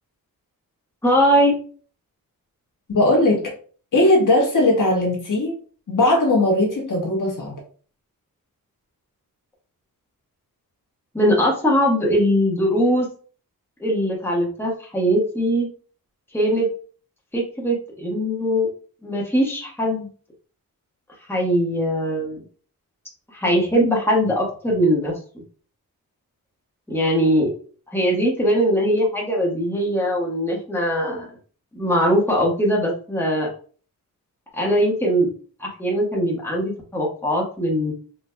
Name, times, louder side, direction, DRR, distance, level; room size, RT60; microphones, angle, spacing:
voice 1, 1.0-1.5 11.1-13.1 13.8-15.7 16.3-16.7 17.3-18.7 19.0-20.1 21.3-22.4 23.3-25.4 26.9-27.5 27.9-31.3 31.7-33.5 34.5-35.3 35.6-37.9, equal, 5° left, -2 dB, 1.3 m, -21 dB
voice 2, 2.9-3.5 3.9-5.6 5.9-7.5, left 1 dB, 60° left, -2 dB, 1.4 m, -18 dB
4.0 x 3.1 x 2.3 m, 0.42 s
cardioid pair, 70°, 36 cm